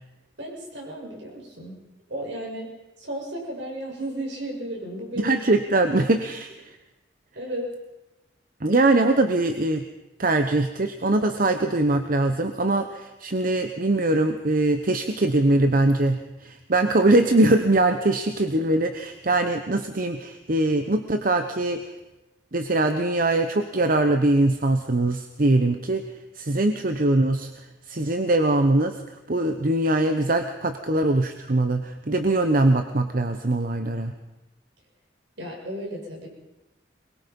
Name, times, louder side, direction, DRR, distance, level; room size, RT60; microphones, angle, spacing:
voice 1, 0.4-1.7 2.1-2.7 3.0-5.4 7.3-7.7 35.4-36.3, right 1 dB, 75° right, -1 dB, 6.7 m, -34 dB
voice 2, 5.2-6.5 8.6-9.8 10.2-21.9 22.5-26.0 26.3-27.5 27.9-29.0 29.3-34.1, right 2 dB, 50° right, 7 dB, 1.0 m, -22 dB
23.0 x 21.5 x 5.4 m, 1.0 s
head